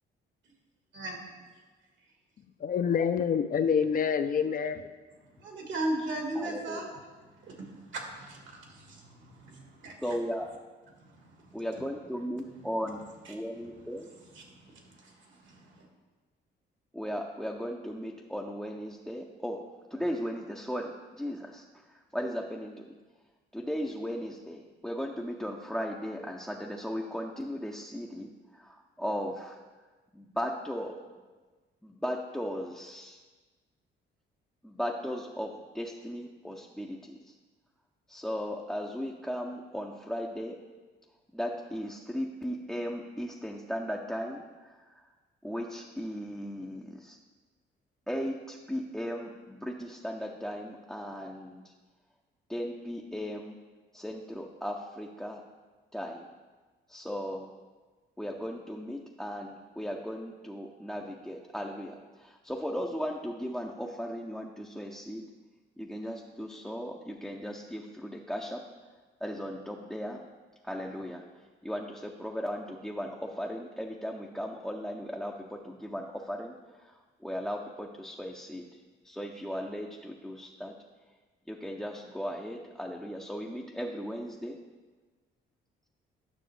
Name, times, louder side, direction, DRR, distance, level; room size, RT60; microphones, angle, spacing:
voice 1, 0.9-1.3 5.4-6.8 7.4-8.7 9.8-10.0 11.0-11.6 14.4-15.8, right 1 dB, 70° right, 1 dB, 1.7 m, -37 dB
voice 2, 2.6-4.9, left 7 dB, 45° left, 11 dB, 0.5 m, -27 dB
voice 3, 6.4-6.8 10.0-10.5 11.5-13.0 13.3-14.1 16.9-19.6 19.9-22.8 23.5-29.6 30.1-31.0 31.8-33.2 34.6-37.3 38.1-40.6 41.3-45.0 45.4-47.2 48.1-51.7 52.5-53.6 53.9-55.4 55.9-56.3 56.9-57.5 58.2-65.3 65.8-68.6 69.2-70.2 70.6-71.2 71.6-78.7 79.0-80.7 81.5-84.6, equal, ahead, 0 dB, 0.6 m, -37 dB
10.0 x 6.1 x 3.3 m, 1.3 s
cardioid pair, 90°, 20 cm